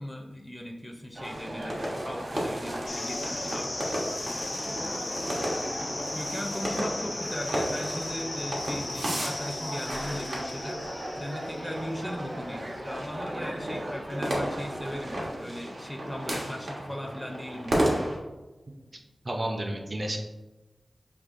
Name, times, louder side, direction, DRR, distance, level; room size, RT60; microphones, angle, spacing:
voice 1, 0.0-5.0 6.1-10.8 11.2-18.1, equal, 5° left, 0 dB, 0.5 m, -38 dB
sound 1, 1.1-15.4, equal, 60° right, 1.1 m, -38 dB
sound 2, 1.2-18.2, right 1 dB, 90° right, 1.1 m, -34 dB
sound 3, 2.9-12.0, left 2 dB, 85° left, 0.8 m, -37 dB
voice 2, 19.2-20.2, right 1 dB, 40° right, 2 dB, 0.5 m, -31 dB
6.6 x 2.8 x 2.5 m, 1.1 s
wide cardioid pair, 85°, 0 cm